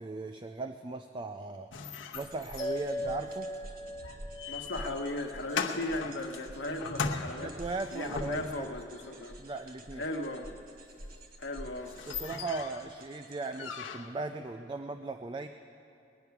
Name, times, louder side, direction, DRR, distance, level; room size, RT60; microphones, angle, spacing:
voice 1, 0.0-3.5 7.4-8.7 9.4-10.1 12.1-15.5, right 3 dB, 25° right, 7 dB, 0.4 m, -38 dB
sound 1, 1.7-8.8 11.1-11.2 11.6-11.7 11.8-12.9 13.5-14.3, left 5 dB, 85° left, 0.9 m, -39 dB
sound 2, 2.1-13.8, right 1 dB, 50° right, 1.1 m, -49 dB
sound 3, 2.6-7.3, equal, 5° right, 2.4 m, -41 dB
voice 2, 4.5-7.5 7.9-9.4 10.0-10.5 11.4-12.0, left 1 dB, 65° left, 3 dB, 1.1 m, -37 dB
21.0 x 9.5 x 5.9 m, 2.8 s
head